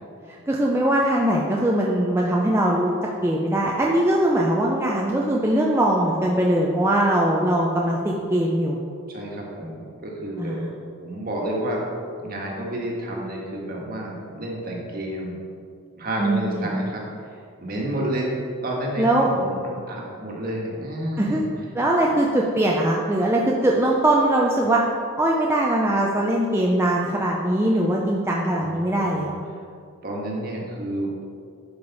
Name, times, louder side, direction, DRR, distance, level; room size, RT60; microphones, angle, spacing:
voice 1, 0.3-2.9 3.2-8.8 10.4-10.7 16.2-16.7 19.0-19.3 21.2-21.4 21.7-24.8 25.2-29.4, right 1 dB, 10° right, -3 dB, 0.5 m, -21 dB
voice 2, 9.1-10.6 11.0-11.8 12.2-15.4 16.0-17.0 17.6-18.3 18.6-21.5 22.1-22.2 28.6-29.3 30.0-31.2, right 1 dB, 40° right, -2 dB, 1.5 m, -30 dB
11.5 x 5.2 x 4.1 m, 2.3 s
head